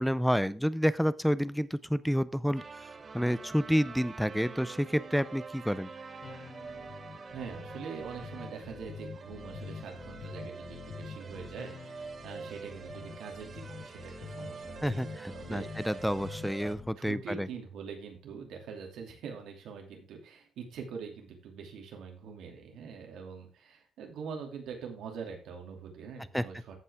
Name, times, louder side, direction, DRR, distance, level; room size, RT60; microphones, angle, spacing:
voice 1, 0.0-2.6 3.1-5.9 14.8-17.5 26.3-26.4, equal, ahead, 16 dB, 0.5 m, -29 dB
sound 1, 2.5-16.7, right 4 dB, 35° right, 0.9 m, -46 dB
sound 2, 6.2-16.9, left 6 dB, 45° left, 0.8 m, -46 dB
voice 2, 7.3-15.9 17.0-26.7, right 6 dB, 85° right, 2 dB, 2.7 m, -44 dB
15.0 x 5.5 x 3.5 m, 0.37 s
cardioid pair, 135°, 0 cm